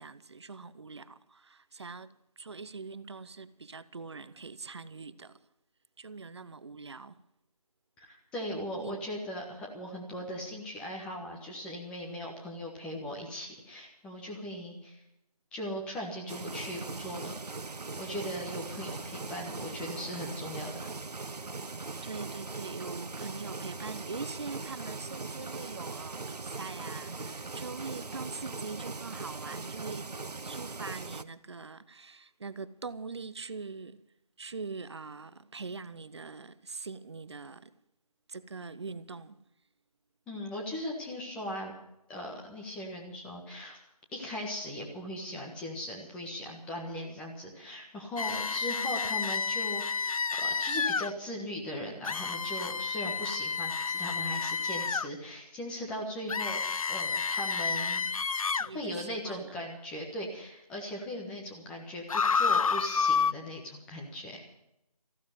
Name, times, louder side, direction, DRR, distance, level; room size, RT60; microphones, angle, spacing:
voice 1, 0.0-5.4 6.0-7.2 8.8-9.0 18.4-18.5 22.0-30.1 30.4-34.0 34.4-37.8 38.3-39.4 58.6-59.5, right 4 dB, 45° right, 0.7 m, -43 dB
voice 2, 8.0-15.0 15.5-17.6 18.0-20.7 23.2-23.3 40.3-41.7 42.1-43.8 44.1-58.1 58.7-62.0 62.3-64.5, equal, 5° left, 1.4 m, -39 dB
sound 1, 16.3-31.2, right 3 dB, 80° right, 0.9 m, -40 dB
sound 2, 48.2-51.1 52.0-55.1 56.3-58.7 62.1-63.3, left 5 dB, 60° left, 0.5 m, -30 dB
15.0 x 12.0 x 7.6 m
figure-of-eight pair, 160°, 20 cm